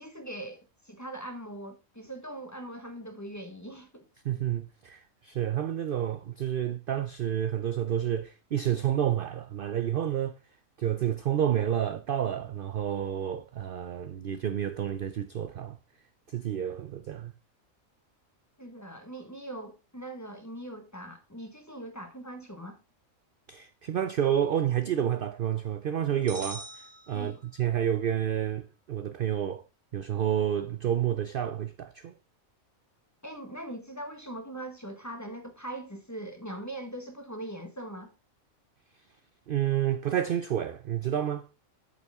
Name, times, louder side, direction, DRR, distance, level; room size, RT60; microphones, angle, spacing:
voice 1, 0.0-4.0 18.6-22.8 27.1-27.4 33.2-38.1, right 1 dB, 15° left, 1.4 m, -41 dB
voice 2, 4.2-10.4 10.8-15.8 16.3-17.3 23.5-29.6 29.9-32.1 39.5-41.5, right 10 dB, 55° right, 0.6 m, -29 dB
sound 1, 26.3-27.8, right 2 dB, 25° right, 1.6 m, -44 dB
8.5 x 7.1 x 3.5 m
omnidirectional pair, 1.4 m